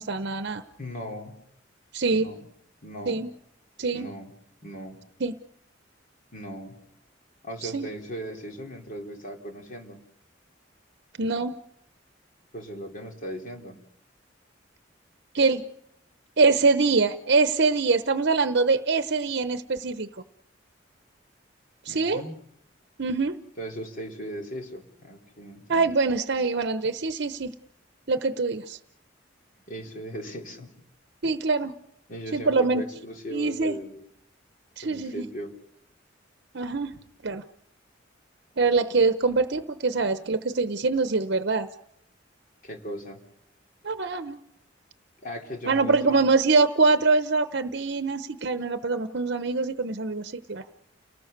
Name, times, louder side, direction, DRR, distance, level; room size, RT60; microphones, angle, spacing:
voice 1, 0.0-0.6 1.9-2.3 3.1-3.3 3.8-4.1 5.2-5.3 7.6-7.9 11.2-11.6 15.3-15.6 16.4-20.1 21.8-22.2 23.0-23.4 25.7-27.5 28.1-28.8 31.2-31.7 32.3-32.9 33.3-33.8 34.8-35.2 36.5-36.9 37.2-37.4 38.6-41.7 43.8-44.4 45.7-50.6, right 4 dB, 60° right, 10 dB, 0.9 m, -24 dB
voice 2, 0.8-1.4 2.1-2.5 2.8-3.2 3.9-4.3 4.6-5.0 6.3-6.8 7.4-10.0 12.5-13.8 21.9-22.4 23.6-25.9 29.7-30.7 32.1-34.0 34.8-35.5 42.6-43.2 45.2-46.3, equal, 45° left, 2 dB, 3.5 m, -38 dB
30.0 x 19.0 x 6.7 m, 0.77 s
head